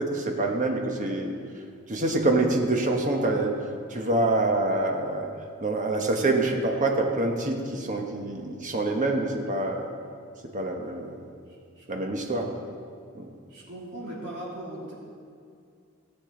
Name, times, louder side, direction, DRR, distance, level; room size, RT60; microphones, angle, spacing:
voice 1, 0.0-1.3 1.9-3.6 3.9-5.3 5.6-9.9 10.5-11.2 11.9-12.5 13.1-13.3, right 2 dB, 40° right, 2 dB, 1.1 m, -26 dB
voice 2, 11.5-12.0 13.5-14.9, right 1 dB, 60° right, -6 dB, 2.9 m, -39 dB
15.5 x 7.7 x 3.8 m, 2.3 s
head